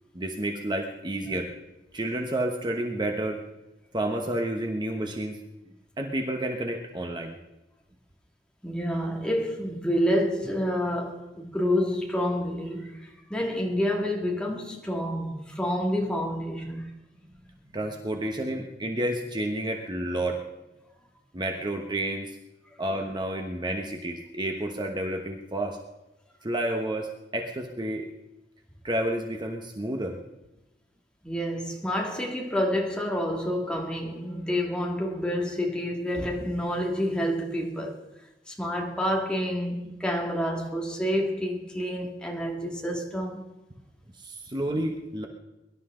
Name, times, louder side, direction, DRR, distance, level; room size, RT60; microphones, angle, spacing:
voice 1, 0.1-1.5 1.9-3.4 3.9-5.4 6.0-7.3 17.6-20.4 21.3-22.4 22.8-25.8 26.4-28.1 28.8-30.2 44.1-45.3, right 1 dB, 25° right, 1.1 m, -30 dB
voice 2, 8.6-16.9 31.2-38.0 38.5-43.4, equal, 5° left, 2.2 m, -28 dB
23.0 x 12.0 x 3.8 m
head